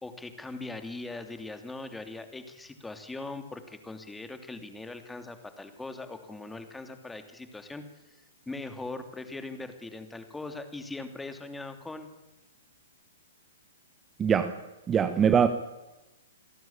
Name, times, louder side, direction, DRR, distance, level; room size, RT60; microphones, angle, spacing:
voice 1, 0.0-8.1 8.5-12.1, left 2 dB, 5° left, 7 dB, 2.9 m, -40 dB
voice 2, 14.2-14.5 14.9-15.5, right 7 dB, 20° right, 10 dB, 1.3 m, -22 dB
28.0 x 17.5 x 8.9 m, 1.1 s
figure-of-eight pair, 115°, 0 cm